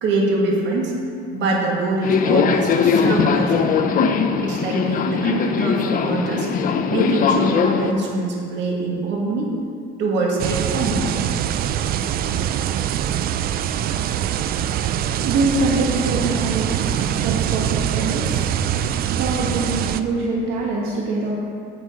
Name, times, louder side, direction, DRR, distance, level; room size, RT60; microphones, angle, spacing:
voice 1, 0.0-0.9 1.3-3.8 4.4-6.5 6.9-9.5 10.0-11.3, right 2 dB, 65° right, -1 dB, 1.9 m, -23 dB
Subway metro underground, 2.0-7.9, left 6 dB, 40° left, 0.6 m, -20 dB
sound 1, 10.4-20.0, right 10 dB, 50° right, 0.4 m, -23 dB
voice 2, 14.4-21.3, right 3 dB, 80° right, -4 dB, 1.2 m, -25 dB
9.1 x 8.1 x 3.7 m, 2.4 s
cardioid pair, 125°, 21 cm